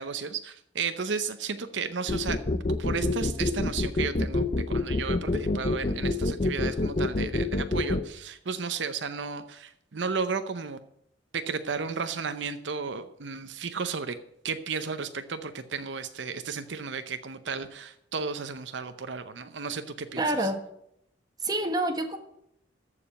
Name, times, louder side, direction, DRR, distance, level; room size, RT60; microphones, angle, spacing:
voice 1, 0.0-10.8 11.3-14.2 14.4-20.5, right 5 dB, 70° right, 10 dB, 0.7 m, -34 dB
sound 1, 2.1-8.0, left 2 dB, 40° left, 0.7 m, -26 dB
voice 2, 20.2-20.6 21.4-22.2, right 1 dB, 20° right, 5 dB, 1.5 m, -27 dB
14.0 x 4.9 x 8.7 m, 0.75 s
head